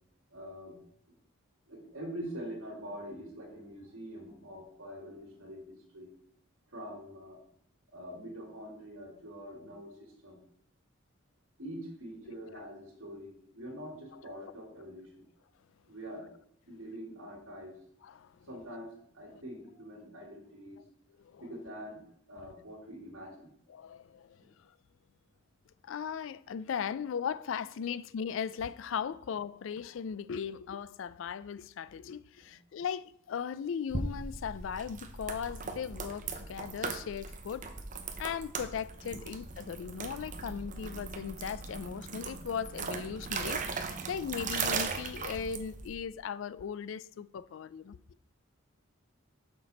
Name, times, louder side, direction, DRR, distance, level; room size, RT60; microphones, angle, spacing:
voice 1, 0.3-0.8 1.7-6.1 6.7-7.4 7.9-10.4 11.6-15.3 15.9-16.3 16.7-17.8 18.5-20.8 21.4-22.0 22.3-23.5 24.4-24.5 32.4-32.5, equal, 80° right, 2.4 m, -45 dB
voice 2, 18.0-18.5 19.3-19.4 21.2-21.4 23.7-24.7 25.8-37.7 38.2-48.0, left 7 dB, 65° left, 0.3 m, -38 dB
sound 1, 33.9-45.9, right 4 dB, 40° right, 0.7 m, -38 dB
6.5 x 6.0 x 4.1 m
head